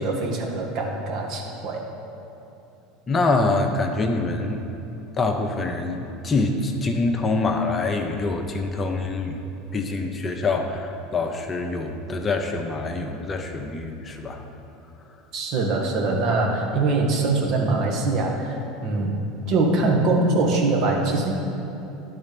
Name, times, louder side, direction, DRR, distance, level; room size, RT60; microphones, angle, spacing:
voice 1, 0.0-1.8 15.3-19.2 19.5-21.3, right 3 dB, 55° right, -1 dB, 1.4 m, -23 dB
voice 2, 3.1-4.6 4.9-9.4 9.7-14.4, left 3 dB, 30° left, 4 dB, 0.7 m, -25 dB
10.5 x 4.2 x 5.2 m, 2.9 s
hypercardioid pair, 80°, 0 cm